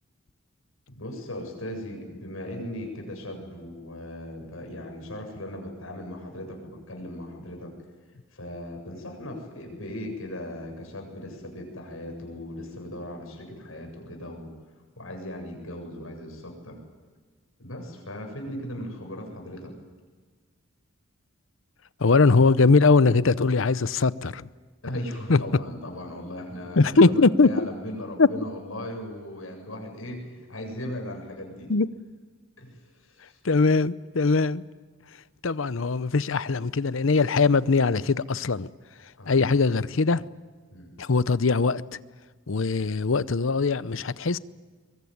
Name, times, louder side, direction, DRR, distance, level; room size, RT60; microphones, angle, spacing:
voice 1, 0.9-7.7 8.3-14.5 15.0-16.8 17.6-19.7 24.8-31.7 32.6-33.4 39.2-39.4 40.7-40.9, left 1 dB, 90° left, 7.9 m, -38 dB
voice 2, 22.0-24.5 25.3-25.4 26.8-27.7 28.2-28.3 31.7-31.9 33.4-34.6 35.4-38.7 39.0-40.3 41.0-42.0 42.5-44.4, left 4 dB, 70° left, 0.7 m, -21 dB
23.0 x 23.0 x 9.5 m
head